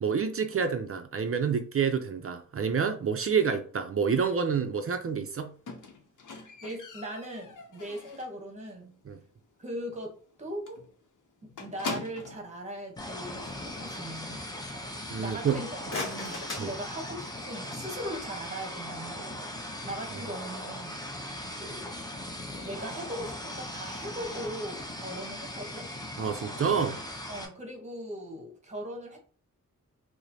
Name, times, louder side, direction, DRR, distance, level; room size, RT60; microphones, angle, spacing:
voice 1, 0.0-5.5 9.1-9.2 15.1-15.6 16.6-16.7 26.2-27.0, right 6 dB, 45° right, 0.4 m, -28 dB
Squeak, 5.7-8.4 8.8-9.2 9.4-9.5 9.9-10.0 10.3-10.4 10.7-12.5 13.3-13.4, left 3 dB, 70° left, 0.7 m, -41 dB
voice 2, 6.6-9.0 9.6-10.8 11.4-14.7 15.2-19.5 19.8-21.9 22.6-25.9 27.3-29.2, right 1 dB, 20° right, 1.0 m, -40 dB
sound 1, 13.0-27.5, left 1 dB, 15° left, 0.6 m, -39 dB
sound 2, 15.5-17.6, left 2 dB, 40° left, 1.4 m, -39 dB
4.8 x 2.0 x 2.7 m
wide cardioid pair, 130°, 31 cm